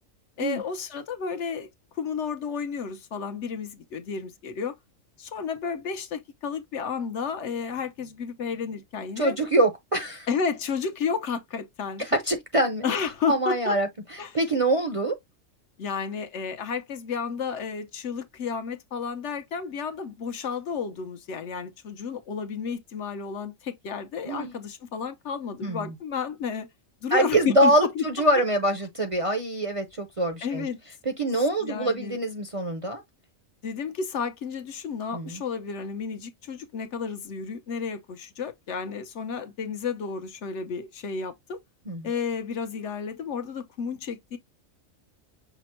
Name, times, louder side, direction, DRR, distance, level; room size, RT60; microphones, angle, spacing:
voice 1, 0.4-4.7 5.2-9.4 10.3-12.0 12.8-13.8 14.2-14.4 15.8-26.7 27.0-28.0 30.4-30.8 31.6-32.2 33.6-41.6 42.0-44.4, left 6 dB, 65° left, 1.0 m, -32 dB
voice 2, 9.2-10.3 12.0-12.8 13.3-13.9 14.3-15.1 24.2-24.5 25.6-25.9 27.1-30.7 31.2-33.0 35.1-35.4 41.9-42.1, right 1 dB, 35° right, 0.6 m, -24 dB
6.0 x 2.1 x 4.2 m
omnidirectional pair, 1.3 m